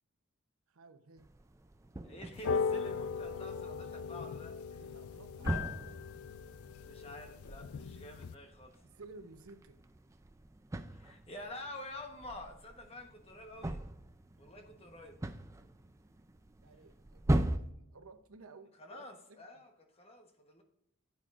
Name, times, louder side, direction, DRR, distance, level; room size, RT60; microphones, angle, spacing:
voice 1, 0.7-1.2 4.8-5.9 8.8-9.8 16.6-19.4, right 3 dB, 75° right, 9 dB, 0.8 m, -55 dB
sound 1, 1.2-17.6, right 1 dB, 15° right, 0.3 m, -40 dB
voice 2, 2.0-4.8 5.4-5.7 6.8-8.7 10.9-13.8 14.4-15.2 18.8-20.6, left 2 dB, 25° left, 4 dB, 1.1 m, -49 dB
sound 2, 2.3-8.4, left 5 dB, 80° left, 0.4 m, -38 dB
9.6 x 8.5 x 2.5 m, 0.81 s
head